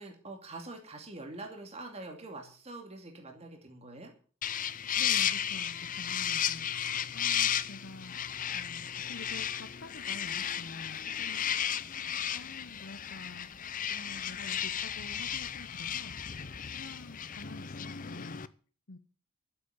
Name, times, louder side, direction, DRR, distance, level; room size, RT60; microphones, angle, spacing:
voice 1, 0.0-4.1, right 2 dB, 30° right, 3 dB, 2.5 m, -45 dB
sound 1, 4.4-18.5, left 9 dB, 40° left, 0.6 m, -34 dB
voice 2, 5.0-8.2 8.5-12.0 12.3-13.5 13.9-16.2 16.7-18.4 18.9-19.0, left 2 dB, 55° left, 8 dB, 1.0 m, -48 dB
12.0 x 8.3 x 8.1 m, 0.41 s
head